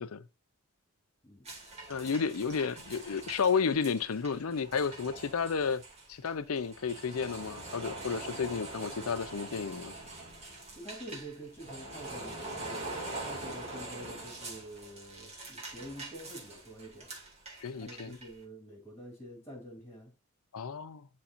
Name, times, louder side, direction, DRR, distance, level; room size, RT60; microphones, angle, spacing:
voice 1, 1.2-1.5 8.2-8.4 10.7-17.1 17.8-20.1, equal, 10° left, 3.0 m, -47 dB
sound 1, 1.4-18.4, right 2 dB, 30° right, 2.4 m, -44 dB
voice 2, 1.9-5.8 6.1-9.9 17.6-18.2 20.5-21.1, left 5 dB, 80° left, 0.5 m, -32 dB
11.5 x 4.2 x 2.5 m
head